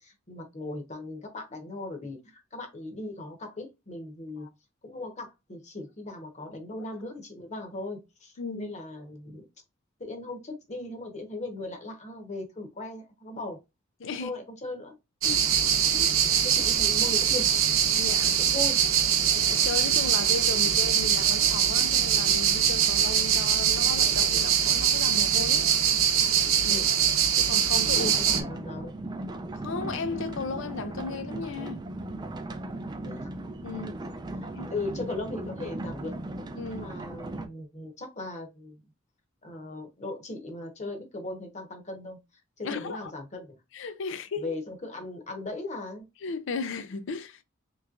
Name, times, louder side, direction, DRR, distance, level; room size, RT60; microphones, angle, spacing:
voice 1, 0.0-4.5 4.8-9.5 10.0-13.6 14.2-15.0 16.4-17.6 18.4-18.8 26.7-26.9 27.9-29.0 33.0-33.3 33.8-34.0 34.3-36.2 36.7-38.8 39.4-42.2 42.6-43.6 44.4-46.0, left 2 dB, 35° left, 1.1 m, -38 dB
voice 2, 8.4-8.7 14.0-14.3 15.2-15.4 15.9-16.4 18.0-18.4 19.3-25.7 26.6-26.8 27.4-28.1 29.6-31.8 33.6-34.0 34.5-34.7 36.6-36.9 42.6-43.1 43.7-44.5 46.2-47.4, left 4 dB, 65° left, 0.5 m, -35 dB
sound 1, 15.2-28.4, right 8 dB, 85° right, 0.7 m, -23 dB
sound 2, 27.7-37.5, right 2 dB, 20° right, 0.4 m, -37 dB
3.4 x 3.1 x 2.5 m
head